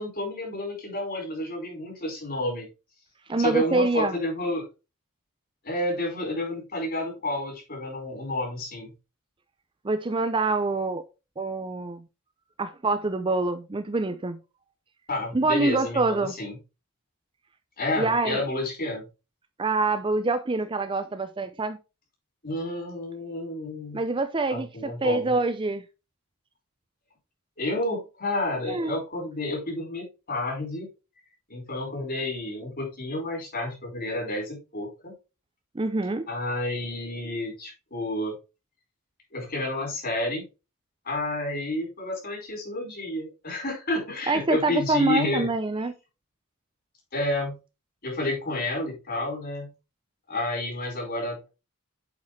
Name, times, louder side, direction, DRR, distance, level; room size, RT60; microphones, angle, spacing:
voice 1, 0.0-2.6 3.4-4.6 5.6-8.9 15.1-16.5 17.8-19.0 22.4-24.0 24.5-25.3 27.6-30.9 31.5-35.1 36.3-38.3 39.3-40.4 41.0-45.5 47.1-47.6 48.0-49.7 50.3-51.5, left 1 dB, 45° left, 4.7 m, -30 dB
voice 2, 3.3-4.2 9.8-11.0 11.4-12.0 12.6-14.4 15.3-16.3 18.0-18.4 19.6-21.8 23.9-25.8 28.6-28.9 35.7-36.3 44.3-45.9, right 3 dB, 20° right, 0.5 m, -25 dB
8.2 x 5.2 x 3.2 m
head